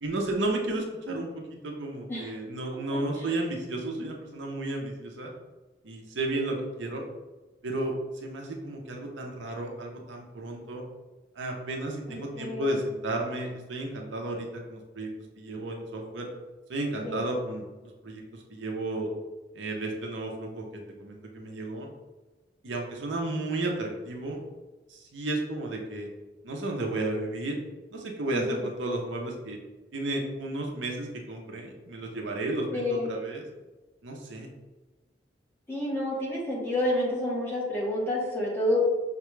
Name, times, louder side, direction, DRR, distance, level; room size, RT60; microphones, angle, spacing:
voice 1, 0.0-5.3 5.8-7.0 7.6-7.9 8.2-10.8 11.4-15.1 15.4-16.3 16.7-19.1 19.5-20.7 21.0-21.9 22.6-24.4 24.9-26.1 26.4-27.6 27.9-29.6 29.9-33.4 34.0-34.5, right 2 dB, 75° right, 1 dB, 0.7 m, -33 dB
voice 2, 2.7-3.3 12.1-12.7 17.0-17.2 28.3-28.6 32.7-33.1 35.7-38.8, left 1 dB, 15° left, -6 dB, 1.0 m, -29 dB
5.8 x 2.3 x 3.1 m, 1.2 s
head